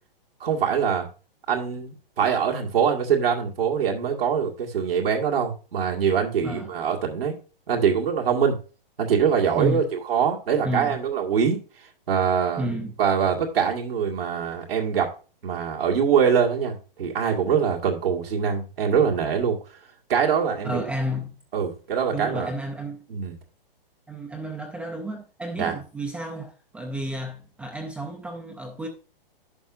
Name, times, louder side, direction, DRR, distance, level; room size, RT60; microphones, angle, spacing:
voice 1, 0.4-1.1 1.5-7.3 7.7-8.6 9.0-9.8 10.1-11.6 12.1-12.7 13.0-15.1 15.4-19.6 20.1-20.8 21.5-22.5 23.1-23.4 25.6-25.8, right 7 dB, 80° right, 1.9 m, -23 dB
voice 2, 10.6-11.0 12.6-13.0 20.6-21.3 22.1-23.0 24.1-28.9, right 1 dB, 5° right, 0.4 m, -31 dB
11.0 x 6.0 x 2.6 m
hypercardioid pair, 145°, 29 cm